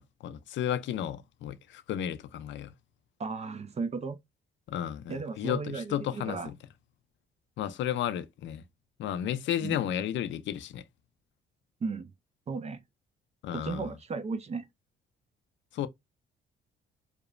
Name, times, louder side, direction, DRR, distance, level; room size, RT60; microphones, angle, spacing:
voice 1, 0.0-2.7 4.7-6.6 7.6-8.6 9.0-10.8 13.4-13.9 15.7-15.9, left 10 dB, 70° left, 0.4 m, -33 dB
voice 2, 3.2-4.2 5.1-6.5 9.6-9.8 11.8-12.1 12.5-12.8 13.5-14.7, right 4 dB, 35° right, 0.5 m, -35 dB
2.9 x 2.0 x 2.3 m
cardioid pair, 90°, 20 cm